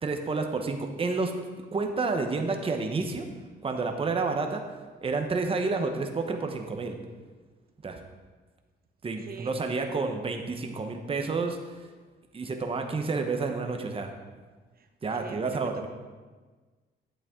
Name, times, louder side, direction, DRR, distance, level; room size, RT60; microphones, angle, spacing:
voice 1, 0.0-1.3 1.7-3.2 3.6-4.6 5.0-7.0 7.8-8.0 9.0-11.6 12.3-14.1 15.0-15.9, right 4 dB, 30° right, 4 dB, 0.9 m, -29 dB
voice 2, 9.2-9.6 9.9-10.0 14.7-15.9, right 5 dB, 50° right, 6 dB, 1.0 m, -43 dB
8.8 x 8.0 x 3.7 m, 1.4 s
cardioid pair, 90°, 20 cm